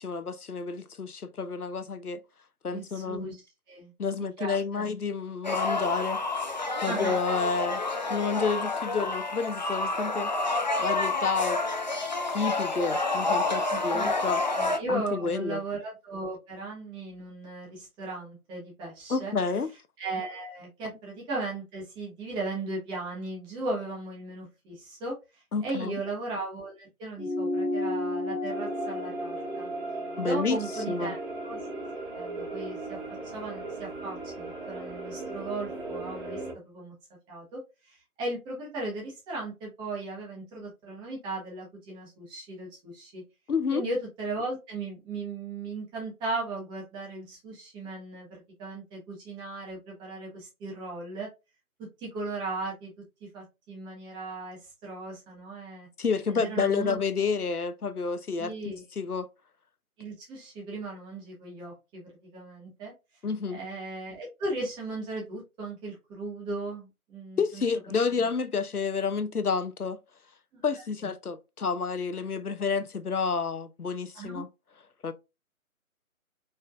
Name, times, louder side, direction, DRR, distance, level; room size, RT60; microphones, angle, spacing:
voice 1, 0.0-2.2 2.6-3.4 4.0-6.2 6.8-7.8 8.1-10.3 10.8-11.6 12.3-14.4 14.9-15.6 19.1-19.7 25.5-25.9 30.2-30.6 30.9-31.2 43.5-43.8 56.0-58.5 59.0-59.3 63.2-63.6 67.4-70.0 70.6-74.5 75.0-75.1, left 5 dB, 85° left, 0.8 m, -29 dB
voice 2, 2.7-3.3 3.7-3.9 4.2-4.9 6.9-7.2 13.7-14.1 14.6-19.3 20.0-29.7 30.2-31.2 31.4-31.6 32.1-33.0 33.3-36.9 37.3-43.2 43.7-51.3 52.0-52.9 53.2-55.9 56.3-57.0 58.4-58.8 60.0-62.0 62.3-62.9 63.5-67.6 70.5-70.6 71.0-71.1 74.1-74.4, right 2 dB, 10° right, 1.5 m, -37 dB
sound 1, 5.4-14.8, left 2 dB, 35° left, 0.5 m, -29 dB
sound 2, 27.2-32.0, left 2 dB, 60° left, 1.5 m, -34 dB
sound 3, 28.5-36.5, right 3 dB, 35° right, 1.8 m, -37 dB
5.1 x 4.2 x 2.5 m
figure-of-eight pair, 140°, 43 cm